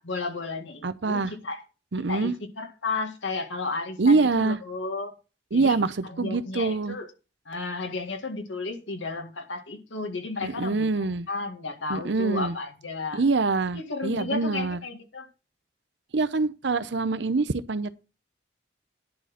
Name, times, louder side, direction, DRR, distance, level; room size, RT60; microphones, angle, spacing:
voice 1, 0.0-1.6 2.1-5.1 5.5-5.8 6.1-7.1 7.5-13.3 13.7-15.3, left 3 dB, 85° left, 2.0 m, -33 dB
voice 2, 0.8-1.3 1.9-2.3 4.0-4.6 5.5-7.0 10.4-11.3 11.9-12.6 13.1-14.8 16.1-18.0, right 3 dB, 70° right, 0.7 m, -25 dB
11.0 x 4.2 x 7.1 m
head